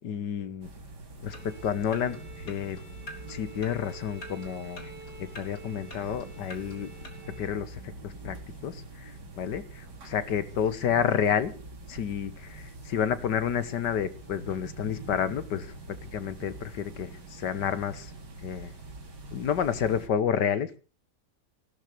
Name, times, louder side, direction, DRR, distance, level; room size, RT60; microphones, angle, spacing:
voice 1, 0.0-0.7 1.2-2.8 3.3-4.9 5.2-7.1 7.4-8.4 8.6-11.5 11.9-18.1 18.4-18.7 19.3-20.8, left 8 dB, 85° left, 14 dB, 1.8 m, -30 dB
sound 1, 0.6-20.1, right 2 dB, 80° right, 3.2 m, -45 dB
sound 2, 1.3-7.1, left 2 dB, 55° left, 3.3 m, -49 dB
Bowed string instrument, 1.3-7.6, right 5 dB, 35° right, 4.0 m, -49 dB
16.0 x 12.0 x 6.7 m, 0.38 s
omnidirectional pair, 1.8 m